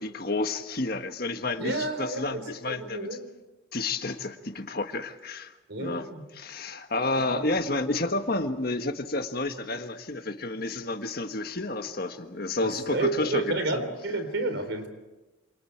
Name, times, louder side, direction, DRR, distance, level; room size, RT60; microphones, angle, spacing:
voice 1, 0.0-3.1 3.7-5.5 5.8-6.1 6.3-13.8, left 2 dB, 50° left, 7 dB, 1.6 m, -30 dB
voice 2, 1.6-3.3 5.7-6.2 7.1-7.4 12.6-14.9, right 2 dB, 65° right, 9 dB, 3.9 m, -31 dB
28.0 x 28.0 x 4.6 m, 1.1 s
head